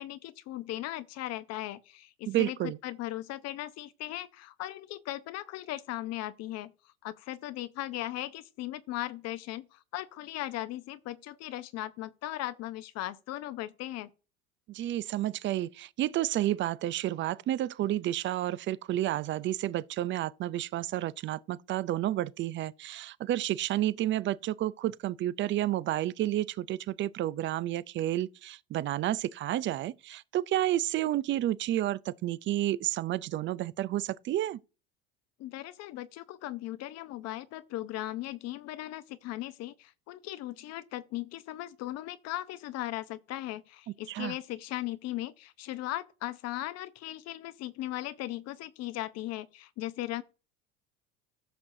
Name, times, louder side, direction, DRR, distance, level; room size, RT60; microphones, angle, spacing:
voice 1, 0.0-6.7 7.0-14.1 35.4-50.2, left 15 dB, 55° left, 0.7 m, -38 dB
voice 2, 2.3-2.8 14.7-34.6 44.1-44.4, right 13 dB, 40° right, 0.5 m, -30 dB
14.0 x 6.0 x 2.7 m
hypercardioid pair, 90°, 31 cm